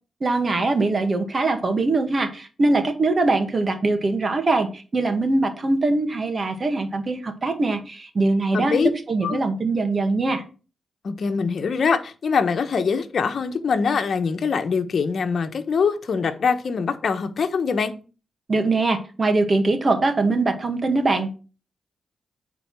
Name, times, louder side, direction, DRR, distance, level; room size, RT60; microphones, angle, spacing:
voice 1, 0.2-8.8 9.1-10.4 18.5-21.3, right 2 dB, 40° right, 2.0 m, -22 dB
voice 2, 8.5-8.9 9.2-9.4 11.0-17.9, left 5 dB, 65° left, 1.2 m, -23 dB
9.2 x 4.2 x 6.2 m
cardioid pair, 70°, 0 cm